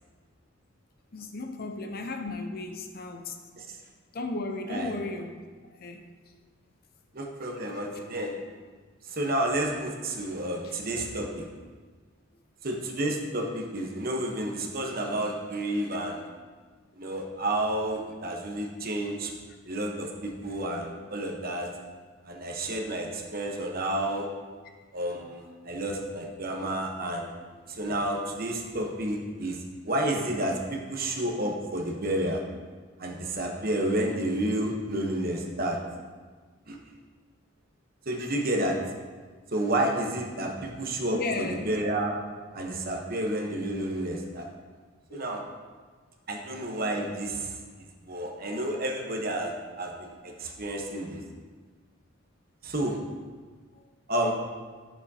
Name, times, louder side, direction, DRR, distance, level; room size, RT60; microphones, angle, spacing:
voice 1, 1.1-3.4 4.1-5.4 5.8-6.1 7.7-7.8 10.6-10.7 40.7-40.8 41.1-41.7 42.9-43.0 45.1-45.2, left 2 dB, 50° left, 6 dB, 0.6 m, -35 dB
voice 2, 7.1-8.3 9.1-11.5 12.6-16.2 17.0-19.3 19.7-21.7 22.3-24.3 24.9-27.3 27.7-29.6 29.8-32.4 33.0-35.8 36.7-36.8 38.1-38.8 39.5-42.2 42.5-44.5 45.1-45.4 46.3-47.5 48.1-51.2 52.6-53.0 54.1-54.3, right 1 dB, 50° right, 1 dB, 1.0 m, -30 dB
11.0 x 7.1 x 2.8 m, 1.5 s
head